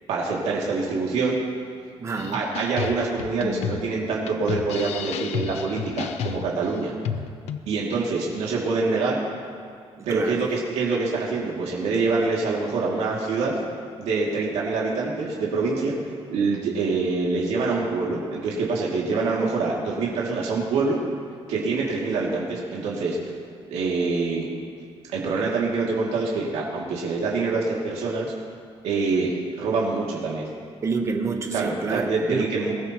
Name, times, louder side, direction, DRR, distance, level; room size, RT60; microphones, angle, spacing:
voice 1, 0.1-1.4 2.3-6.9 7.7-9.2 10.1-13.5 14.0-16.0 16.3-21.0 21.5-23.2 23.7-24.4 25.1-28.3 28.8-30.5 31.5-32.7, right 4 dB, 90° right, -4 dB, 2.6 m, -25 dB
voice 2, 2.0-2.4 10.0-10.4 30.8-32.5, right 4 dB, 30° right, 4 dB, 1.1 m, -28 dB
sound 1, 2.2-7.6, left 8 dB, 85° left, 0.7 m, -32 dB
22.0 x 14.0 x 3.1 m, 2.2 s
cardioid pair, 170°, 11 cm